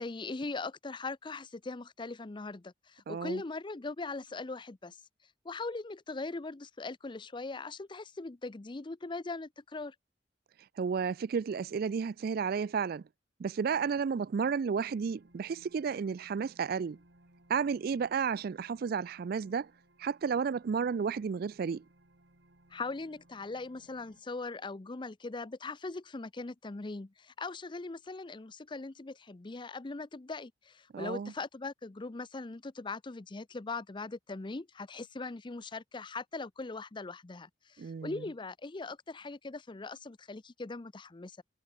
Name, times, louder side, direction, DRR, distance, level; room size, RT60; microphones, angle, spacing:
voice 1, 0.0-5.0 5.4-9.9 22.7-41.4, left 3 dB, 25° left, 0.6 m, -40 dB
voice 2, 3.1-3.4 10.8-13.0 13.4-17.0 17.5-19.7 20.0-21.8 30.9-31.3 37.8-38.2, right 6 dB, 55° right, 0.4 m, -32 dB
sound 1, 14.9-24.2, right 1 dB, 75° right, 3.8 m, -64 dB
head